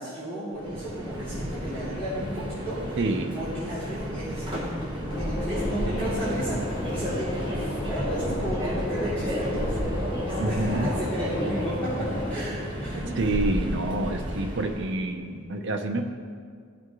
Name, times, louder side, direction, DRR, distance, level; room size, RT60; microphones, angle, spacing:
voice 1, 0.0-3.0 3.3-10.0 10.3-13.1, right 1 dB, 10° left, -14 dB, 2.9 m, -33 dB
Subway metro underground, 0.5-14.9, equal, 20° right, 1.3 m, -33 dB
voice 2, 3.0-3.4 10.4-11.0 13.2-16.1, right 2 dB, 55° right, 4 dB, 0.8 m, -28 dB
sound 1, 5.1-12.3, left 1 dB, 55° left, 2.1 m, -32 dB
16.5 x 7.2 x 3.1 m, 2.1 s
head